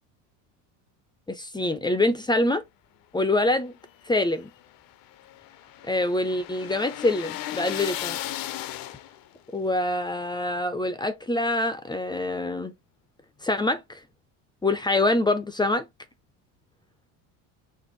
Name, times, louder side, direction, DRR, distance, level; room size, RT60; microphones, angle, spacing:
voice 1, 1.3-2.6 3.1-3.7 4.0-4.5 5.9-8.2 9.5-12.7 13.4-14.0 14.6-15.9, left 2 dB, 10° left, 0.5 m, -25 dB
sound 1, 3.9-9.4, left 13 dB, 50° left, 0.6 m, -36 dB
4.6 x 2.5 x 3.9 m
supercardioid pair, 110°, 44 cm